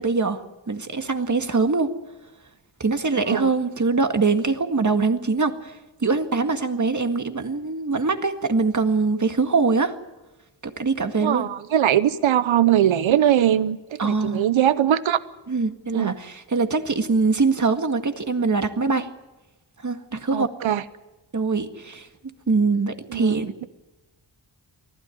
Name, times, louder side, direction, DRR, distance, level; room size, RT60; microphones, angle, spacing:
voice 1, 0.0-1.9 2.8-5.8 6.0-10.0 10.6-11.5 14.0-14.4 15.5-19.1 19.8-20.5 21.3-22.1 22.5-23.5, right 4 dB, 40° right, 7 dB, 1.9 m, -23 dB
voice 2, 11.2-15.2 15.9-16.1 20.3-20.8 23.1-23.7, right 11 dB, 85° right, 15 dB, 0.9 m, -21 dB
24.0 x 15.0 x 9.3 m, 1.0 s
cardioid pair, 60°, 46 cm